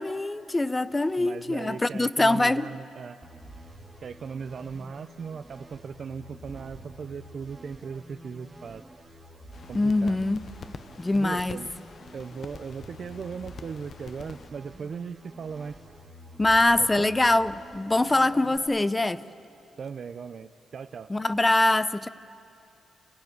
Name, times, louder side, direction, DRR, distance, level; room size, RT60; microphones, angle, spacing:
voice 1, 0.0-2.7 9.7-10.5 11.0-11.6 16.4-19.2 21.1-22.1, left 2 dB, 15° left, 15 dB, 0.6 m, -23 dB
voice 2, 1.2-3.2 4.0-8.8 9.7-10.2 11.2-11.7 12.1-15.8 16.8-17.1 19.8-21.1, right 6 dB, 50° right, 9 dB, 0.5 m, -38 dB
sound 1, 3.2-18.6, right 1 dB, 15° right, 2.2 m, -48 dB
sound 2, 9.5-14.5, left 6 dB, 50° left, 0.8 m, -46 dB
29.0 x 17.5 x 9.5 m, 2.8 s
cardioid pair, 125°, 0 cm